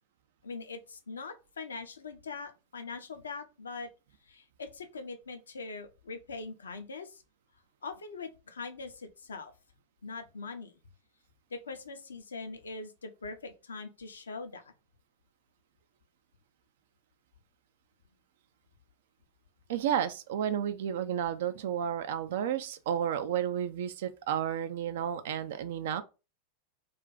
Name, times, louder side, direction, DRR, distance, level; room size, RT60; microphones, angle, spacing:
voice 1, 0.4-3.9 4.3-7.2 7.8-9.5 10.0-10.7 11.5-14.6, left 4 dB, 70° left, 0.5 m, -42 dB
voice 2, 19.7-26.0, right 9 dB, 55° right, 0.3 m, -32 dB
2.4 x 2.2 x 3.8 m
figure-of-eight pair, 90°, 0 cm